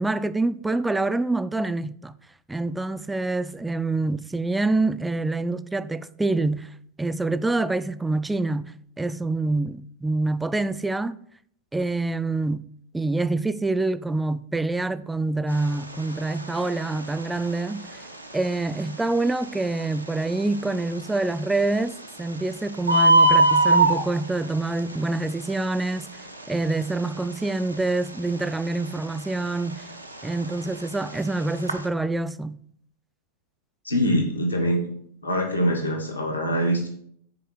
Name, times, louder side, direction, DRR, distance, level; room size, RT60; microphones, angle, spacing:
voice 1, 0.0-2.1 2.5-6.7 7.0-8.7 9.0-11.2 11.7-12.6 12.9-18.0 18.3-26.2 26.5-29.9 30.2-32.6, right 2 dB, 5° right, 0.4 m, -26 dB
Bird, 15.5-31.9, right 2 dB, 85° right, 0.8 m, -26 dB
voice 2, 33.8-34.9 35.2-36.9, equal, 80° left, 1.4 m, -23 dB
6.7 x 4.5 x 6.3 m
figure-of-eight pair, 90°, 0 cm